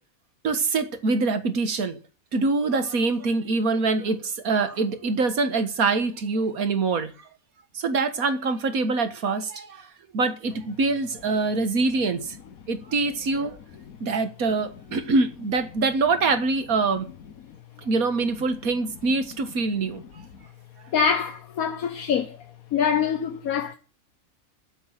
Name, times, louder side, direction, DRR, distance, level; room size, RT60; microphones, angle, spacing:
voice 1, 0.4-2.0 2.3-7.1 7.7-9.9 10.1-12.3 12.7-13.6 14.0-17.1 17.8-20.0, right 3 dB, 90° right, 1.9 m, -24 dB
voice 2, 20.9-22.4 22.7-23.8, left 7 dB, 85° left, 1.5 m, -24 dB
13.0 x 8.0 x 8.8 m
omnidirectional pair, 1.5 m